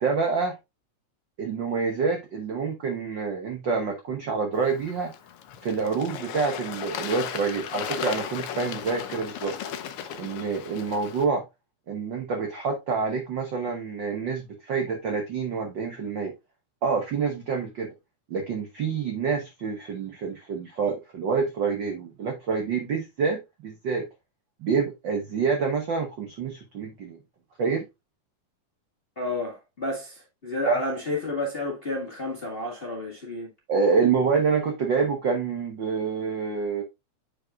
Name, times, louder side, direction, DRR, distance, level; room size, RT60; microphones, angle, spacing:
voice 1, 0.0-0.6 1.4-5.1 5.6-9.5 10.2-11.4 11.9-16.3 16.8-17.9 18.3-24.1 24.6-27.2 27.6-27.8 30.6-30.8 33.7-36.8, right 5 dB, 60° right, 1.2 m, -27 dB
Bird / Water, 4.5-11.2, left 8 dB, 80° left, 1.2 m, -36 dB
voice 2, 29.1-33.5, left 2 dB, 25° left, 1.3 m, -31 dB
8.4 x 5.2 x 2.4 m
omnidirectional pair, 3.4 m